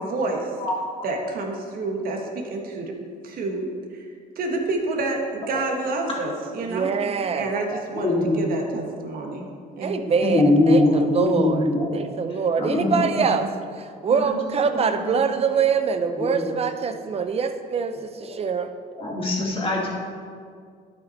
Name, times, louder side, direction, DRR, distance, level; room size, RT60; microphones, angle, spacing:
voice 1, 0.0-0.5 1.0-2.9 3.2-3.7 3.9-4.0 4.3-6.9 7.4-9.5 9.8-10.2, right 2 dB, 60° right, 2 dB, 1.5 m, -28 dB
voice 2, 0.6-1.0 5.5-5.6 7.4-8.5 10.2-12.1 12.6-13.5 14.1-14.4 14.6-15.2 16.2-16.5 16.8-16.9 18.3-18.4 19.0-19.9, left 2 dB, 35° left, -3 dB, 2.5 m, -23 dB
voice 3, 6.7-7.5 9.8-11.7 11.9-13.5 13.8-18.7, right 6 dB, 35° right, 8 dB, 0.7 m, -24 dB
12.0 x 6.0 x 4.2 m, 2.1 s
cardioid pair, 110°, 17 cm